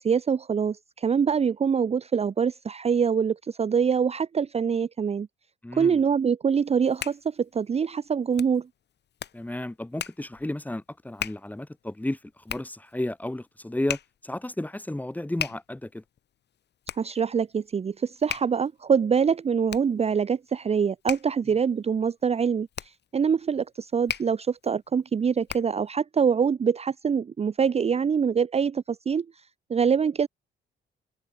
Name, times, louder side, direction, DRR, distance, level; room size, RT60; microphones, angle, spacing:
voice 1, 0.0-5.3 5.7-8.7 17.0-22.7 23.1-29.3 29.7-30.3, right 6 dB, 30° right, 0.6 m, -24 dB
voice 2, 5.6-6.0 9.3-12.2 12.4-16.0, left 1 dB, 10° left, 1.6 m, -33 dB
Hands, 6.6-25.9, left 9 dB, 60° left, 2.2 m, -40 dB
cardioid pair, 90°, 20 cm